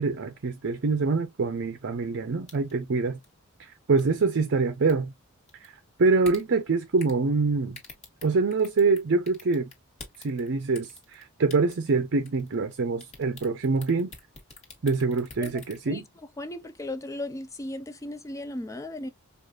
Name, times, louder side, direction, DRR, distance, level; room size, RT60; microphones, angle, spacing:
voice 1, 0.0-3.2 3.6-5.1 5.6-5.7 6.0-7.8 8.2-9.7 10.2-14.1 14.8-16.0, right 4 dB, 55° right, 0.5 m, -25 dB
sound 1, 2.5-2.8 3.2-3.3 4.0-4.2 4.7-4.9 5.5-5.7 6.2-6.4 7.0-7.2 7.7-9.0 9.3-10.5 10.7-11.2 11.5-12.0 12.2-12.7 13.0-15.8, left 4 dB, 30° left, 1.6 m, -45 dB
voice 2, 16.4-19.1, left 1 dB, 15° left, 0.4 m, -36 dB
4.8 x 2.4 x 2.3 m
head